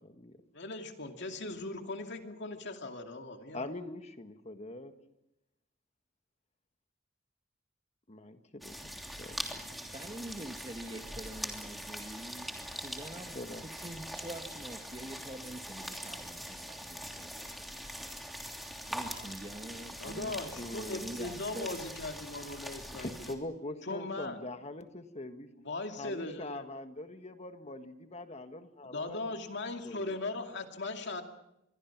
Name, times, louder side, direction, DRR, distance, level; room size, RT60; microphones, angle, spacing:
voice 1, 0.5-3.7 20.0-23.3 23.8-24.4 25.6-26.7 28.8-31.2, left 2 dB, 60° left, 4 dB, 2.5 m, -39 dB
voice 2, 3.5-4.9 8.1-9.4 9.7-9.9 13.3-13.6 20.6-21.1 22.9-25.5 26.0-29.4 29.8-30.2, left 2 dB, 35° left, 8 dB, 1.6 m, -43 dB
sound 1, 8.6-23.4, equal, ahead, 3.1 m, -43 dB
voice 3, 9.9-12.5 12.8-17.6 18.9-20.3 21.0-21.7, right 1 dB, 25° right, 7 dB, 1.5 m, -45 dB
26.5 x 23.0 x 6.0 m, 0.86 s
head